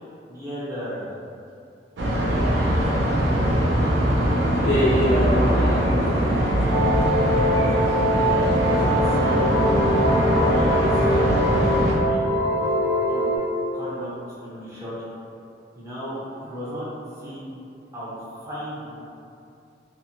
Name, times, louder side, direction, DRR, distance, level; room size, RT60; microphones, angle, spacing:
voice 1, 0.3-1.1 2.1-2.4 6.6-6.8 7.5-9.6 10.4-11.1 11.3-12.7 13.1-13.3 13.7-14.9 15.8-16.9 17.2-17.6 17.9-18.2 18.4-18.9, equal, 15° right, -10 dB, 0.5 m, -35 dB
sound 1, 2.0-12.0, equal, 70° right, 0.5 m, -21 dB
voice 2, 4.4-6.6 15.5-15.6, left 1 dB, 65° left, -9 dB, 0.4 m, -24 dB
sound 2, 6.7-13.4, equal, 55° right, 0.9 m, -23 dB
2.6 x 2.5 x 2.8 m, 2.5 s
head